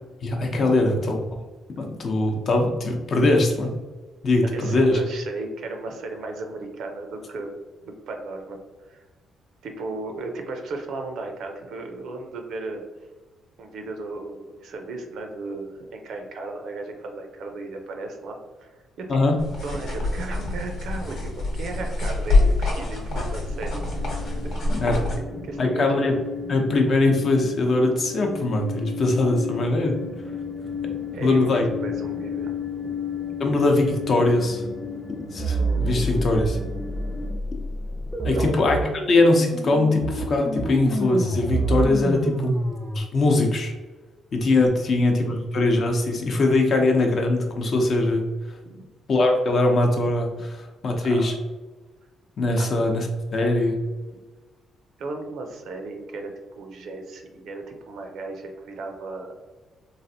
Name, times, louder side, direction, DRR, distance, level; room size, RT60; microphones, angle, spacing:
voice 1, 0.2-1.2 1.8-3.7 4.2-5.0 19.1-19.4 24.7-25.0 25.6-26.1 26.5-30.0 31.2-31.7 33.4-34.6 35.3-36.6 38.2-42.5 42.9-43.7 44.3-48.2 49.1-51.3 52.4-53.8, left 2 dB, 50° left, 3 dB, 0.6 m, -21 dB
voice 2, 4.4-7.6 7.8-8.6 8.9-9.0 9.6-12.8 13.6-19.2 19.6-23.8 24.4-25.9 31.1-32.5 32.8-33.0 38.3-38.5 44.8-45.0 48.6-48.9 51.0-51.3 52.6-52.7 54.1-54.2 55.0-59.4, right 3 dB, 75° right, 4 dB, 0.5 m, -35 dB
sound 1, 19.4-25.2, left 2 dB, 75° left, 0.9 m, -25 dB
sound 2, 23.5-37.3, left 6 dB, 25° left, 0.8 m, -34 dB
sound 3, 35.4-43.0, right 2 dB, 5° right, 0.5 m, -27 dB
3.2 x 2.5 x 2.7 m, 1.2 s
cardioid pair, 90°, 0 cm